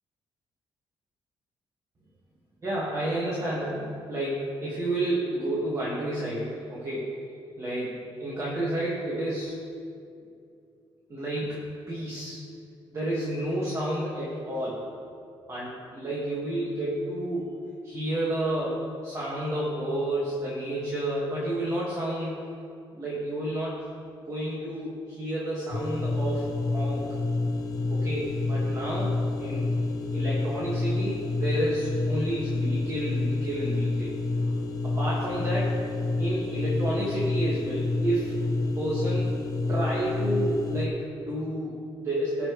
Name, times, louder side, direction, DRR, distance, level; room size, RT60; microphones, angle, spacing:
voice 1, 2.6-7.2 7.6-9.6 11.1-11.6 11.9-12.4 12.9-14.9 15.5-17.5 17.8-22.4 22.9-23.8 24.2-27.1 27.9-29.1 29.4-29.7 30.1-34.5 34.8-35.8 36.2-38.4 38.8-39.3 39.7-42.5, right 1 dB, 30° right, -7 dB, 1.8 m, -30 dB
sound 1, 25.7-40.9, left 2 dB, 40° left, 0.9 m, -28 dB
17.5 x 6.0 x 3.2 m, 2.5 s
cardioid pair, 130°, 10 cm